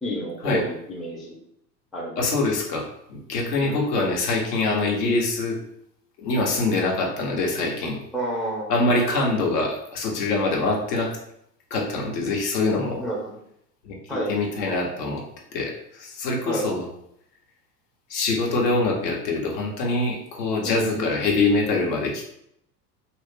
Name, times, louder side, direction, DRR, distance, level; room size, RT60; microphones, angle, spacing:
voice 1, 0.0-1.3 1.9-2.4 3.6-3.9 8.1-8.7 13.0-13.4 14.1-14.3 16.5-16.7 20.6-21.1, right 1 dB, ahead, -4 dB, 0.5 m, -30 dB
voice 2, 2.2-5.6 6.2-8.0 8.7-11.2 11.7-13.0 13.8-15.2 15.5-16.9 18.1-22.3, left 3 dB, 70° left, -1 dB, 1.1 m, -24 dB
2.9 x 2.4 x 3.5 m, 0.74 s
hypercardioid pair, 90°, 50 cm